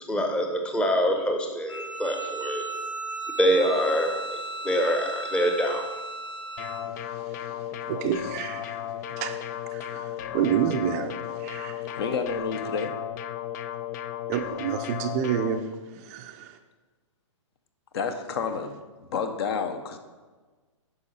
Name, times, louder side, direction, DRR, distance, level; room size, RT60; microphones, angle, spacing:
voice 1, 0.1-2.6 3.4-5.9, equal, 5° left, 0.8 m, -25 dB
Bowed string instrument, 1.7-6.9, right 3 dB, 75° left, 2.1 m, -35 dB
sound 1, 6.6-15.6, left 11 dB, 35° left, 0.4 m, -35 dB
voice 2, 6.9-12.0 14.3-16.6, right 8 dB, 30° right, 0.5 m, -30 dB
voice 3, 12.0-12.9 17.9-18.8 19.1-20.0, left 5 dB, 50° left, 1.0 m, -29 dB
9.8 x 6.2 x 4.2 m
hypercardioid pair, 145°, 17 cm